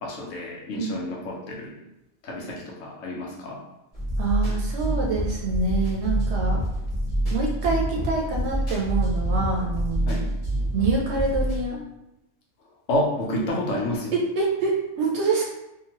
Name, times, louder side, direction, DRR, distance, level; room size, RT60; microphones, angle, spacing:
voice 1, 0.0-1.8 2.2-3.6 10.1-10.3 12.9-14.1, left 1 dB, 85° left, -2 dB, 1.1 m, -29 dB
sound 1, 3.9-11.6, right 1 dB, 30° left, 1.0 m, -26 dB
voice 2, 4.2-6.6 7.3-10.3 10.7-11.8 13.3-13.5 14.1-15.4, right 3 dB, 65° right, -2 dB, 0.8 m, -26 dB
2.9 x 2.6 x 2.8 m, 0.90 s
omnidirectional pair, 1.3 m